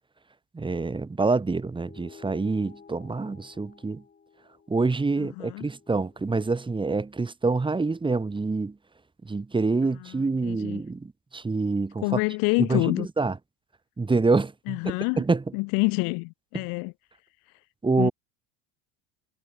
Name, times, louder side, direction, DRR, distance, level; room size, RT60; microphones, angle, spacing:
voice 1, 0.5-4.0 4.7-8.8 9.3-12.0 12.7-13.4 14.0-15.4 17.8-18.1, right 3 dB, 10° right, 1.7 m, -26 dB
sound 1, 1.7-6.6, left 5 dB, 25° left, 7.7 m, -53 dB
voice 2, 5.2-5.7 9.8-10.8 12.0-13.1 14.7-15.2 15.5-16.9 18.0-18.1, left 32 dB, 60° left, 0.6 m, -27 dB
supercardioid pair, 105°, 38 cm